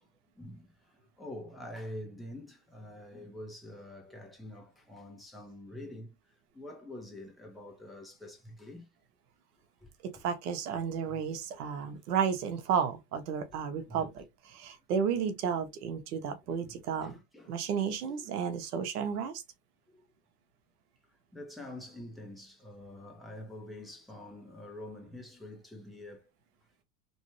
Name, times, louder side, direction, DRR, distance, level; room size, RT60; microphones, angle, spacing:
voice 1, 0.4-6.1 6.5-8.9 13.5-13.6 13.9-14.1 16.6-17.5 17.8-18.3 19.9-20.0 21.3-26.2, left 1 dB, ahead, 1.1 m, -46 dB
voice 2, 10.0-17.2 17.5-19.4, right 7 dB, 85° right, 1.1 m, -32 dB
3.1 x 2.6 x 3.1 m
supercardioid pair, 110°, 45 cm